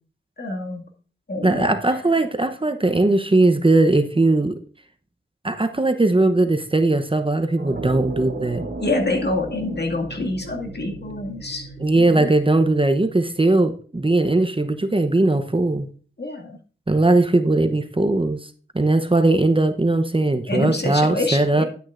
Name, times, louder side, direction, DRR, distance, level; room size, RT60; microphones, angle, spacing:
voice 1, 0.4-0.8 1.3-2.0 8.8-12.3 16.2-16.6 20.5-21.7, left 2 dB, 50° left, 1 dB, 2.1 m, -27 dB
voice 2, 1.4-4.6 5.4-8.6 11.8-15.9 16.9-18.4 18.7-21.6, right 2 dB, 25° right, 8 dB, 0.8 m, -19 dB
sound 1, 7.6-13.4, right 2 dB, 50° right, 1.4 m, -36 dB
10.5 x 9.3 x 2.5 m, 0.41 s
cardioid pair, 50°, 21 cm